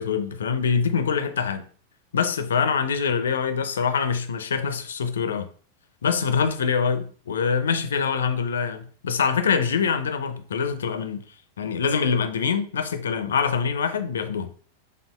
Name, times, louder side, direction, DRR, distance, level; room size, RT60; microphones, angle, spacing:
voice 1, 0.0-1.7 2.1-5.5 6.0-11.2 11.6-14.5, left 6 dB, 65° left, 0.5 m, -24 dB
5.6 x 3.5 x 2.3 m
figure-of-eight pair, 90°, 0 cm